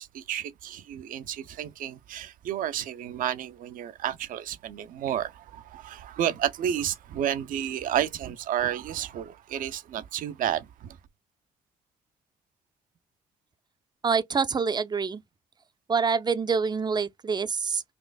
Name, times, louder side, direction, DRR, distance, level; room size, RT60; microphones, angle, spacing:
voice 1, 0.0-11.0, right 10 dB, 70° right, 0.6 m, -31 dB
voice 2, 14.0-15.2 15.9-17.8, right 5 dB, 30° right, 0.5 m, -26 dB
4.3 x 2.5 x 2.3 m
supercardioid pair, 65°, 15 cm